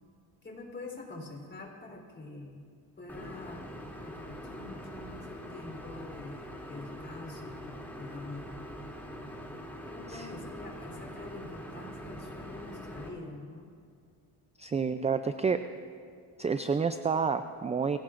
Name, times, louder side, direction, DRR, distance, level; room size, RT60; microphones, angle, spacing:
voice 1, 0.4-2.6 3.0-8.5 9.9-13.7, left 2 dB, 25° left, 0 dB, 3.7 m, -45 dB
sound 1, 3.1-13.1, equal, 5° left, 2.7 m, -43 dB
voice 2, 14.6-15.6 16.4-18.0, right 5 dB, 15° right, 10 dB, 0.4 m, -29 dB
23.0 x 16.5 x 2.5 m, 2.2 s
cardioid pair, 90°, 43 cm